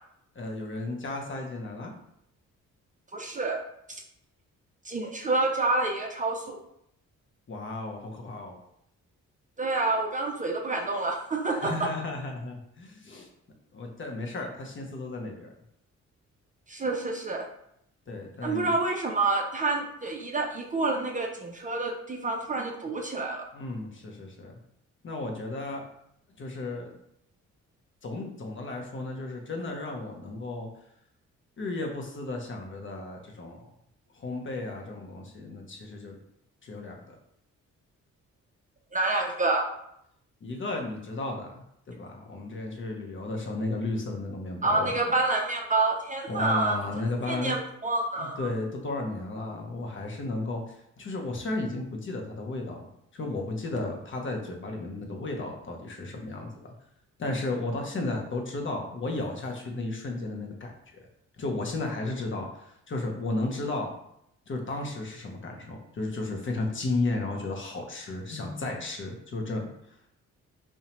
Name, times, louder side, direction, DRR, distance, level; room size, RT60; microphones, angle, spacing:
voice 1, 0.3-1.9 7.5-8.6 11.5-13.3 13.7-15.5 18.1-18.7 23.5-24.6 25.0-25.8 26.4-26.9 28.0-30.7 31.6-33.6 34.1-36.2 36.6-37.1 40.4-45.1 46.3-47.6 48.2-56.7 57.2-61.1 61.4-63.9 64.5-70.1, left 2 dB, 40° left, 1 dB, 0.6 m, -34 dB
voice 2, 3.1-3.6 4.8-6.6 9.6-11.7 16.7-17.5 18.4-23.5 38.9-39.7 44.6-46.7 47.3-48.5, right 3 dB, 25° right, 0 dB, 0.4 m, -28 dB
2.6 x 2.1 x 2.9 m, 0.76 s
supercardioid pair, 60°, 32 cm